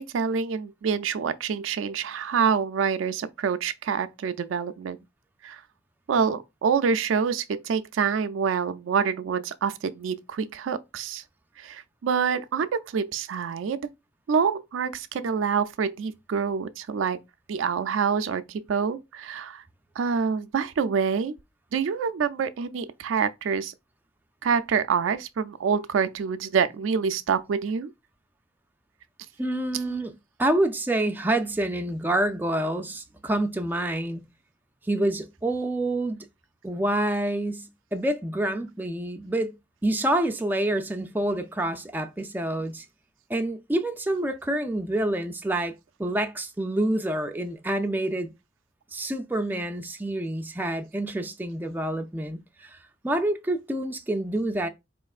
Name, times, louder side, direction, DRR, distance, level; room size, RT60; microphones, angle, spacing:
voice 1, 0.0-5.0 5.4-5.6 6.1-11.2 11.6-13.8 14.3-17.2 17.5-19.6 20.0-21.3 21.7-23.7 24.4-27.9 29.7-30.0, right 6 dB, 80° right, 0.4 m, -26 dB
voice 2, 29.4-30.1 30.4-34.2 34.9-36.3 36.6-39.5 39.8-42.8 43.3-45.7 46.0-48.3 48.9-52.8 53.0-54.7, right 1 dB, 10° right, 0.4 m, -27 dB
4.3 x 3.2 x 2.3 m
head